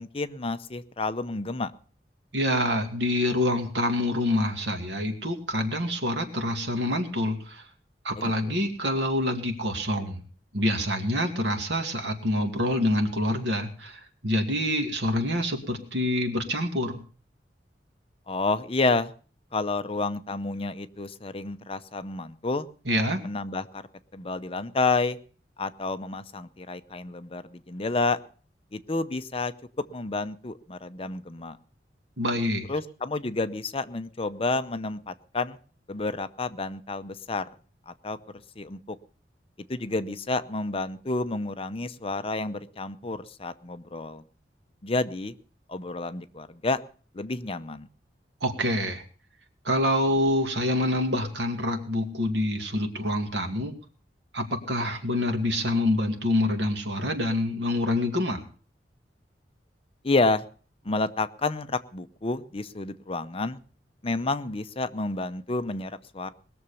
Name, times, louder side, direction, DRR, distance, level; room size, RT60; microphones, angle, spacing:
voice 1, 0.0-1.7 8.2-8.6 18.3-19.1 19.5-22.7 23.2-23.8 24.1-25.2 25.6-28.2 28.7-29.5 29.9-31.6 32.7-35.6 35.9-37.4 37.9-38.2 38.6-39.0 39.7-44.2 44.8-45.3 45.7-46.8 47.1-47.9 60.0-60.4 60.8-63.6 64.0-66.3, left 3 dB, 35° left, 11 dB, 0.7 m, -30 dB
voice 2, 2.3-7.6 8.0-10.2 10.5-17.0 22.9-23.2 32.2-32.7 48.4-49.0 49.6-53.8 54.3-58.4, left 1 dB, 80° right, 5 dB, 2.4 m, -26 dB
20.5 x 7.0 x 6.9 m, 0.41 s
head